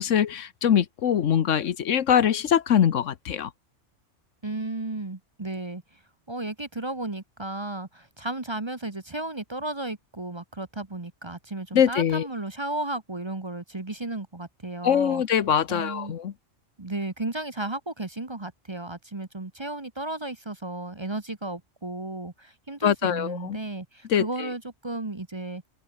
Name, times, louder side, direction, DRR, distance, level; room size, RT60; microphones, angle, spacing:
voice 1, 0.0-3.5 11.7-12.3 14.8-16.3 22.8-23.6 24.1-24.3, left 9 dB, 75° left, 1.3 m, -23 dB
voice 2, 4.4-5.8 6.3-15.4 15.7-16.1 16.8-25.6, right 2 dB, 25° right, 1.2 m, -34 dB
open air
omnidirectional pair, 1.3 m